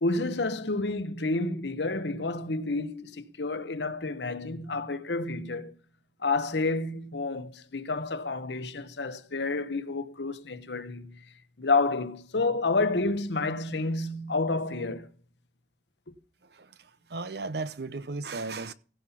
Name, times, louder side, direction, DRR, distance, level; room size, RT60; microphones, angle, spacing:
voice 1, 0.0-5.7 6.2-11.1 11.6-15.1, left 3 dB, 80° left, 1.1 m, -29 dB
voice 2, 16.4-18.7, right 3 dB, 70° right, 0.8 m, -36 dB
16.0 x 5.7 x 5.8 m
head